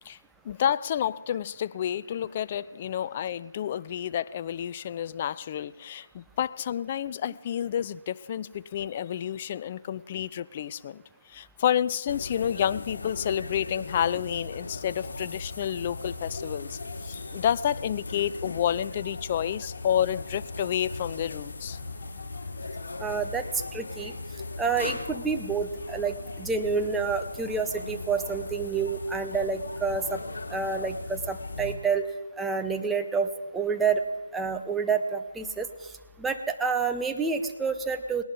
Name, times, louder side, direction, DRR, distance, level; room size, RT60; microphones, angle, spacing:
voice 1, 0.4-11.0 11.3-21.8, left 10 dB, 30° left, 17 dB, 0.4 m, -30 dB
sound 1, 12.1-31.7, left 3 dB, 55° left, 3.0 m, -38 dB
voice 2, 23.0-24.1 24.6-30.2 30.5-32.1 32.4-34.0 34.3-35.9 36.2-38.2, right 5 dB, 5° right, 6 dB, 0.7 m, -28 dB
19.5 x 18.5 x 3.9 m, 1.2 s
figure-of-eight pair, 155°, 0 cm